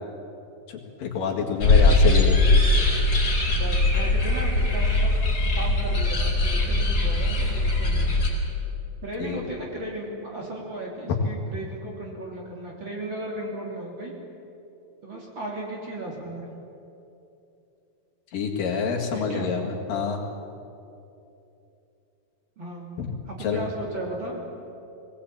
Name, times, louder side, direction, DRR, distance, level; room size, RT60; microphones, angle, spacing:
voice 1, 0.7-2.4 9.2-9.4 18.3-20.2 23.0-23.1 23.4-23.6, left 5 dB, 70° left, 0 dB, 3.6 m, -27 dB
sound 1, 1.6-8.3, left 2 dB, 35° left, 5.3 m, -21 dB
voice 2, 1.6-2.0 3.4-5.2 5.6-8.1 9.0-14.1 15.0-16.5 19.1-19.5 22.6-22.9 23.2-24.4, right 1 dB, 35° right, -2 dB, 3.3 m, -35 dB
22.5 x 17.5 x 8.7 m, 2.8 s
omnidirectional pair, 4.2 m